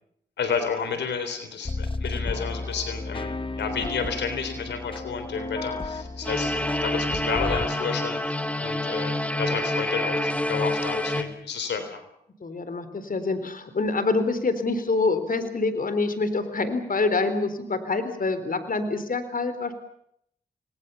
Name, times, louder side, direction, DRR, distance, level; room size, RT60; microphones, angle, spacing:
voice 1, 0.4-12.1, left 5 dB, 90° left, 9 dB, 3.7 m, -31 dB
sound 1, 1.6-7.7, left 3 dB, 30° left, 1.3 m, -33 dB
sound 2, 6.2-11.2, left 1 dB, 5° left, 2.9 m, -27 dB
voice 2, 12.4-19.7, left 3 dB, 55° left, 11 dB, 4.0 m, -26 dB
29.5 x 20.0 x 7.1 m, 0.72 s
cardioid pair, 50°, 18 cm